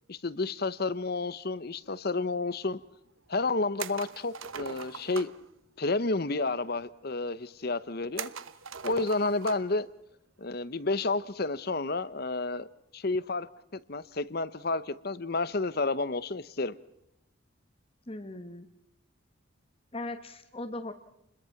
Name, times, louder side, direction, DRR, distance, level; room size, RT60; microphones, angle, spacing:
voice 1, 0.1-2.8 3.3-5.3 5.8-8.3 8.8-9.9 10.4-12.7 12.9-16.8, left 3 dB, 50° left, 0.9 m, -30 dB
sound 1, 3.8-5.4 8.2-9.8 10.1-10.2 11.8-12.1, right 6 dB, 75° right, 1.1 m, -41 dB
voice 2, 18.1-18.7 19.9-20.9, left 2 dB, 25° left, 1.3 m, -38 dB
29.0 x 22.0 x 5.9 m
head